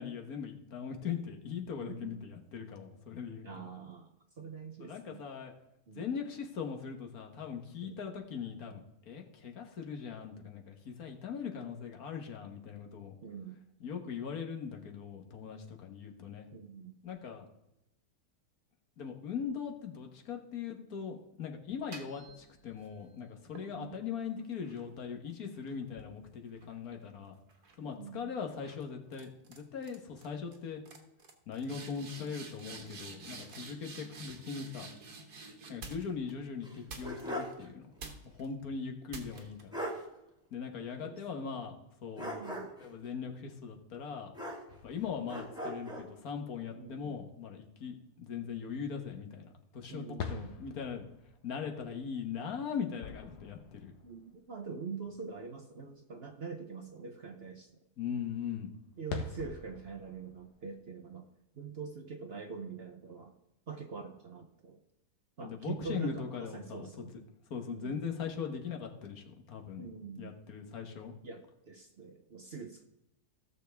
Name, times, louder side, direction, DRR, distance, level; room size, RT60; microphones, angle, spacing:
voice 1, 0.0-3.5 4.8-5.5 5.9-13.1 13.8-16.5 17.0-17.5 19.0-27.3 27.8-30.8 31.5-34.9 35.7-37.9 38.3-39.8 40.5-41.7 42.0-42.3 42.8-44.3 44.8-51.1 51.4-53.9 58.0-58.7 65.4-67.1 67.5-71.1, left 6 dB, 65° left, 3 dB, 1.6 m, -40 dB
voice 2, 1.8-2.1 3.4-5.2 5.9-6.1 7.8-8.0 13.2-13.6 16.5-16.9 23.7-24.0 27.8-28.3 41.0-41.5 42.2-42.7 46.8-47.2 49.9-50.5 54.0-57.7 59.0-61.3 61.5-63.3 63.7-64.8 65.4-67.2 67.7-68.0 69.8-70.4 70.7-70.8 71.2-72.8, right 5 dB, 50° right, 4 dB, 0.9 m, -44 dB
sound 1, 21.7-22.9 23.6-27.1 27.5-27.9 28.6-28.8 29.1-29.6 29.8-30.3 30.5-30.6 30.9-36.3 36.9-37.5 38.0-38.5 39.1-39.6, right 3 dB, 70° right, 1.9 m, -49 dB
sound 2, 36.6-37.6 38.0-38.1 39.3-39.4 39.7-40.0 42.2-42.9 44.3-44.9 45.3-46.1, equal, 5° right, 1.7 m, -39 dB
sound 3, 44.7-47.2 47.6-47.7 50.2-54.5 55.0-55.1 58.7-60.8, left 6 dB, 85° left, 1.7 m, -46 dB
16.5 x 6.9 x 3.4 m, 0.88 s
omnidirectional pair, 1.7 m